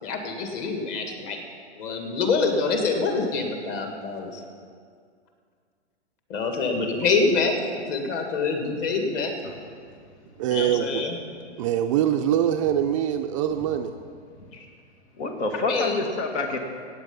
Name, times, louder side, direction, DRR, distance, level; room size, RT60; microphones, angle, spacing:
voice 1, 0.0-1.4 1.8-4.4 6.3-7.6 7.9-9.3 10.5-11.2 14.5-14.7 15.7-16.0, left 4 dB, 35° left, 3 dB, 2.0 m, -26 dB
voice 2, 10.4-11.0 11.6-13.9, right 10 dB, 30° right, 5 dB, 0.4 m, -23 dB
voice 3, 15.1-16.6, left 3 dB, 70° left, 3 dB, 2.0 m, -28 dB
15.0 x 9.1 x 5.4 m, 2.1 s
hypercardioid pair, 130°, 35 cm